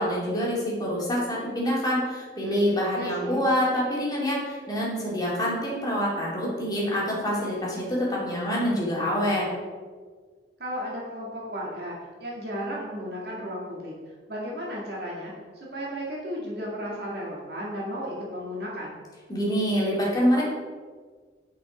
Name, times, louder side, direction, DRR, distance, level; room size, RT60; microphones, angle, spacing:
voice 1, 0.0-9.4 19.3-20.4, equal, 20° left, -5 dB, 2.4 m, -26 dB
voice 2, 2.9-3.4 10.6-13.9 14.3-19.0, equal, 60° right, -4 dB, 2.1 m, -34 dB
9.9 x 5.5 x 5.0 m, 1.6 s
head